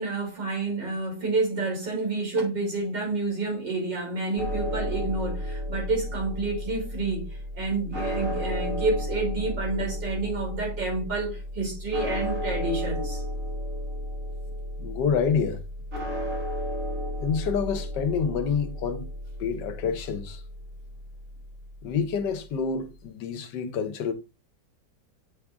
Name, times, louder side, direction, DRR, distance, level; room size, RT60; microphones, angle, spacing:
voice 1, 0.0-13.2, right 3 dB, 80° right, 3.5 m, -29 dB
sound 1, 4.4-22.2, equal, 45° right, 3.2 m, -33 dB
voice 2, 14.8-15.6 17.2-19.0 19.4-20.4 21.8-24.1, left 6 dB, 75° left, 1.4 m, -27 dB
7.5 x 3.6 x 3.6 m
omnidirectional pair, 1.9 m